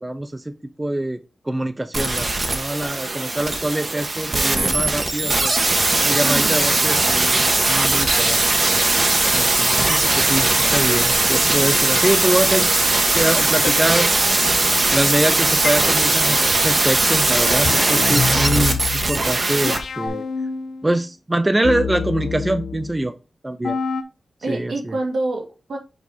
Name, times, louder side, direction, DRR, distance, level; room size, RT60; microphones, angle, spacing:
voice 1, 0.0-0.5 0.8-1.2 1.5-5.5 6.0-8.4 9.3-12.7 13.1-14.1 14.9-20.2 20.8-23.1 23.4-23.8 24.5-25.0, right 1 dB, 15° right, 10 dB, 0.5 m, -24 dB
sound 1, 1.9-19.8 20.1-20.2, right 2 dB, 40° right, 1.2 m, -19 dB
voice 2, 6.2-6.7 24.4-25.8, right 2 dB, 80° right, 2 dB, 1.8 m, -27 dB
sound 2, 9.7-10.4 11.6-12.4 13.6-13.7 15.6-15.7 17.6-21.0 21.6-23.1 23.6-24.0, left 5 dB, 90° left, 0.7 m, -27 dB
6.2 x 4.6 x 3.4 m, 0.29 s
wide cardioid pair, 110°, 0 cm